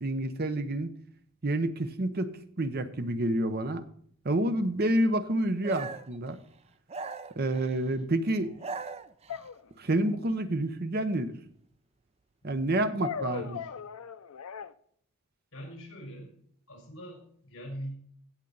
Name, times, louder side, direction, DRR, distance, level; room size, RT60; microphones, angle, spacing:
voice 1, 0.0-0.9 1.4-3.8 4.2-6.4 7.4-8.5 9.8-11.3 12.4-13.6, right 1 dB, 45° right, 10 dB, 0.8 m, -28 dB
sound 1, 5.6-6.2 6.9-7.8 8.4-9.5, right 4 dB, 30° right, 0.4 m, -39 dB
sound 2, 7.5-7.7 9.3-10.2 13.0-14.7, left 7 dB, 85° left, 0.5 m, -39 dB
voice 2, 13.3-13.7 15.5-16.3 16.7-18.0, equal, 65° left, 1 dB, 4.7 m, -42 dB
16.0 x 7.3 x 4.0 m, 0.63 s
head